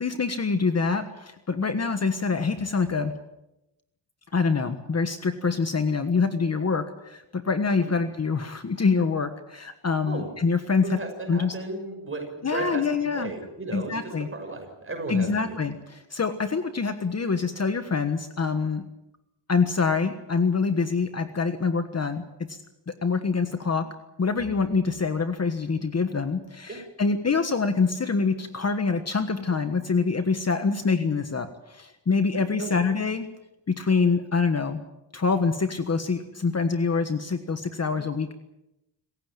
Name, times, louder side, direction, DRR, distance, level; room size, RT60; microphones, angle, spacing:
voice 1, 0.0-3.1 4.3-11.0 11.3-11.5 12.4-13.3 13.7-14.3 15.1-18.9 19.5-22.6 22.9-23.9 24.2-33.3 33.7-34.8 35.1-38.3, left 4 dB, 35° left, 9 dB, 1.4 m, -25 dB
voice 2, 10.1-10.4 10.8-15.6 26.7-26.8 32.3-32.8 37.9-38.1, right 2 dB, 25° right, 4 dB, 6.2 m, -35 dB
27.0 x 15.5 x 9.1 m, 0.89 s
wide cardioid pair, 145°, 46 cm